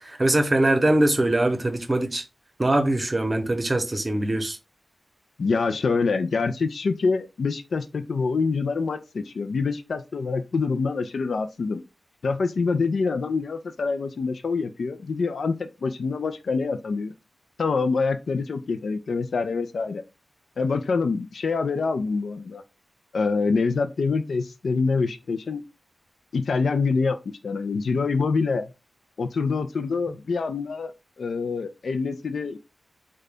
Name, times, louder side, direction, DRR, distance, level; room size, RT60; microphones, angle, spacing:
voice 1, 0.0-2.2 2.6-4.6, right 1 dB, 35° right, 0.8 m, -22 dB
voice 2, 5.4-11.8 12.2-17.1 17.6-20.0 20.6-22.6 23.1-25.6 26.3-27.2 27.4-28.7 29.2-30.9 31.2-32.6, left 4 dB, 80° left, 0.3 m, -25 dB
3.7 x 2.2 x 3.3 m
cardioid pair, 55°, 0 cm